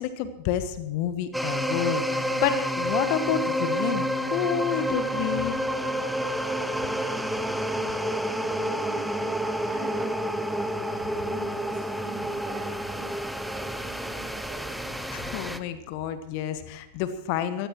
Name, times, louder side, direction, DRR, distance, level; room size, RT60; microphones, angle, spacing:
voice 1, 0.0-5.6 15.1-17.7, left 10 dB, 45° left, 11 dB, 1.1 m, -29 dB
sound 1, 1.3-15.6, equal, ahead, 0.9 m, -29 dB
voice 2, 6.6-15.1, right 4 dB, 35° right, -1 dB, 6.4 m, -44 dB
22.5 x 16.5 x 3.1 m, 0.91 s
figure-of-eight pair, 90°, 0 cm